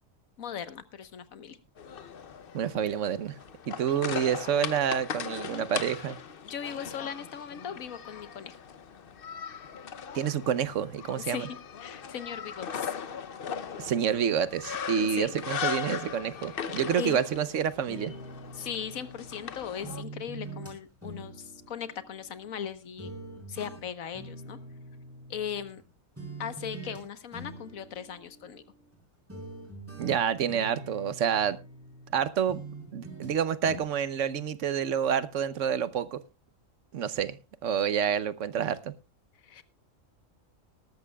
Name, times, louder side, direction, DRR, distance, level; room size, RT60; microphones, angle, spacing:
voice 1, 0.4-1.6 3.9-4.0 5.5-5.6 6.4-8.6 11.2-12.9 15.0-15.3 16.5-16.6 17.0-17.2 18.5-23.1 23.5-24.6 25.3-25.8 26.4-28.6 39.4-39.6, left 8 dB, 90° left, 1.5 m, -38 dB
sound 1, 1.8-20.0, left 7 dB, 50° left, 0.8 m, -39 dB
voice 2, 2.5-3.4 3.7-6.2 10.1-11.5 13.8-18.1 30.0-31.6 32.1-32.6 32.9-36.2 36.9-38.9, right 8 dB, 65° right, 1.1 m, -28 dB
sound 2, 17.9-19.5 19.8-22.7 23.0-25.9 26.2-27.0 27.3-29.0 29.3-32.2 32.5-33.4 33.6-33.8, right 2 dB, 10° right, 4.0 m, -44 dB
19.5 x 13.0 x 2.3 m
omnidirectional pair, 1.4 m